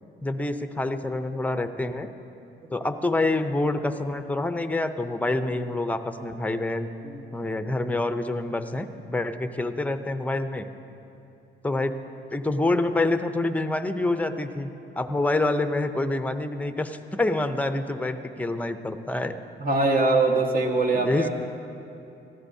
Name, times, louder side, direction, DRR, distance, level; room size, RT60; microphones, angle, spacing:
voice 1, 0.2-2.1 2.7-6.9 7.3-10.7 11.6-12.0 12.3-14.7 15.0-19.4 20.9-21.3, left 2 dB, 5° left, 9 dB, 0.6 m, -27 dB
voice 2, 19.6-21.3, right 3 dB, 45° right, 1 dB, 1.6 m, -22 dB
17.5 x 14.0 x 2.7 m, 2.7 s
cardioid pair, 90°, 20 cm